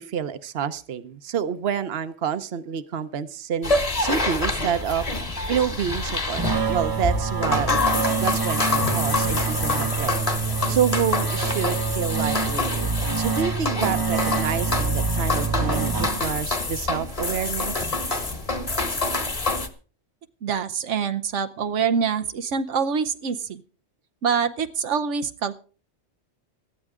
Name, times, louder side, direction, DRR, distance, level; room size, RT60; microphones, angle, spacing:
voice 1, 0.0-7.8 8.2-10.2 10.7-15.9 16.2-17.9, right 8 dB, 60° right, 12 dB, 1.1 m, -28 dB
sound 1, 3.6-19.7, left 3 dB, 30° left, 1.4 m, -26 dB
sound 2, 6.4-16.6, right 5 dB, 25° right, 0.6 m, -27 dB
voice 2, 20.4-23.6 24.2-25.6, right 6 dB, 85° right, 9 dB, 1.2 m, -25 dB
18.0 x 13.0 x 3.7 m, 0.39 s
omnidirectional pair, 1.2 m